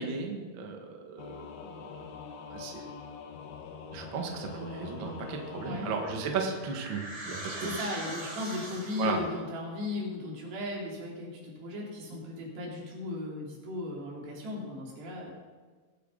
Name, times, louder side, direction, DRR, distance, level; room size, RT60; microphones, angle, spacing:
voice 1, 0.0-1.9 2.5-2.9 3.9-7.7 9.0-9.2, right 5 dB, 60° right, 2 dB, 1.2 m, -35 dB
Singing / Musical instrument, 1.2-6.2, left 6 dB, 80° left, 3.1 m, -44 dB
sound 1, 6.0-9.3, right 1 dB, 10° right, 1.9 m, -41 dB
voice 2, 7.6-15.3, left 2 dB, 85° right, -3 dB, 5.0 m, -36 dB
21.5 x 8.3 x 3.9 m, 1.4 s
omnidirectional pair, 4.7 m